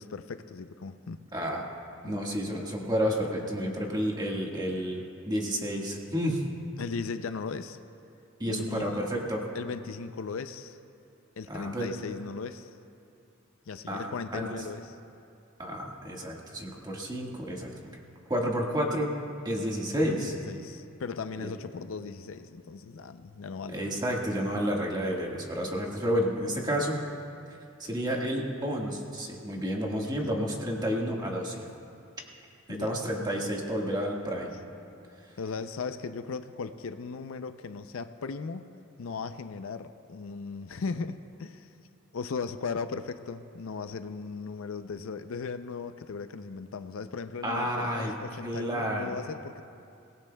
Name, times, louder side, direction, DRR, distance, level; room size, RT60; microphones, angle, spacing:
voice 1, 0.0-1.2 2.0-2.2 6.8-7.8 8.5-9.0 9.5-10.8 11.4-12.7 13.7-14.9 20.1-23.8 30.2-30.4 32.7-32.9 35.4-38.7 39.0-41.7 42.1-49.6, left 5 dB, 70° left, 10 dB, 0.5 m, -37 dB
voice 2, 1.3-1.7 2.0-6.4 8.4-9.4 11.5-11.9 13.9-14.5 15.6-17.7 18.3-19.2 19.4-20.3 21.4-21.5 23.7-27.0 27.8-31.7 32.7-34.6 47.4-48.1 48.4-49.2, equal, 20° right, -1 dB, 1.6 m, -30 dB
22.5 x 18.5 x 2.3 m, 2.5 s
head